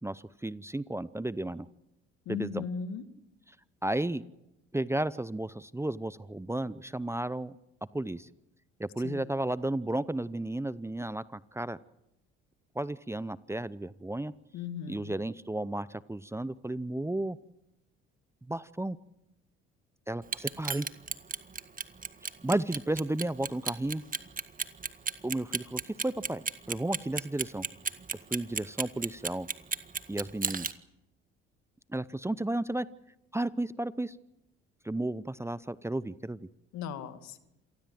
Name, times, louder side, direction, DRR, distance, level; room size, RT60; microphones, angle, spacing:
voice 1, 0.0-1.7 2.3-2.6 3.8-4.2 4.7-7.6 7.9-8.3 8.8-11.8 12.8-14.3 14.9-17.4 18.5-19.0 20.1-20.9 22.4-24.0 25.2-27.6 28.3-29.5 30.1-30.7 31.9-32.9 33.3-34.2 34.8-36.5, right 1 dB, 10° right, 17 dB, 0.8 m, -33 dB
voice 2, 2.3-3.0 9.0-9.3 14.5-15.1 36.7-37.4, left 6 dB, 70° left, 10 dB, 2.3 m, -37 dB
Clock, 20.2-30.7, right 5 dB, 30° right, 1.7 m, -33 dB
27.5 x 19.5 x 7.8 m, 0.88 s
hypercardioid pair, 60°, 29 cm